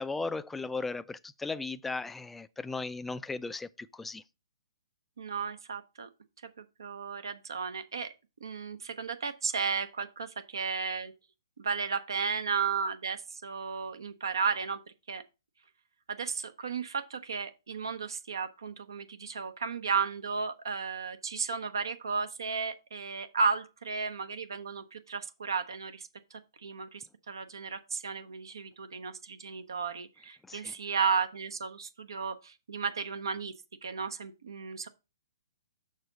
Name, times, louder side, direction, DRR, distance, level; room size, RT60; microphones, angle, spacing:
voice 1, 0.0-4.2 30.5-30.7, left 3 dB, 5° left, 0.3 m, -36 dB
voice 2, 5.2-6.1 6.6-8.1 8.4-11.1 11.6-14.8 15.1-15.2 16.1-33.5 33.8-34.9, right 5 dB, 70° right, 0.9 m, -34 dB
6.7 x 6.1 x 3.9 m
hypercardioid pair, 130°, 2 cm